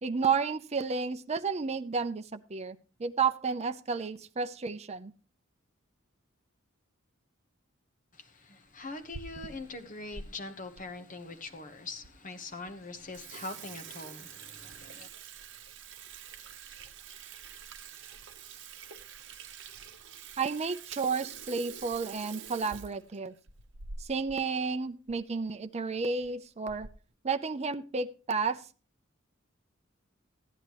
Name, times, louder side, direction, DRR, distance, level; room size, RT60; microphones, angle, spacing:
voice 1, 0.0-5.1 20.4-23.3 24.0-26.9 27.2-28.6, right 5 dB, 35° right, 0.6 m, -32 dB
voice 2, 8.7-15.1, left 3 dB, 40° left, 1.2 m, -42 dB
Water tap faucet / Sink (filling or washing), 8.8-10.3 10.8-10.9 11.6-11.7 12.0-12.1 12.5-12.7 13.0-24.4 24.7-24.8 25.1-25.2 26.0-26.3 26.7-27.1, right 6 dB, 60° right, 0.9 m, -46 dB
14.5 x 10.0 x 3.1 m
head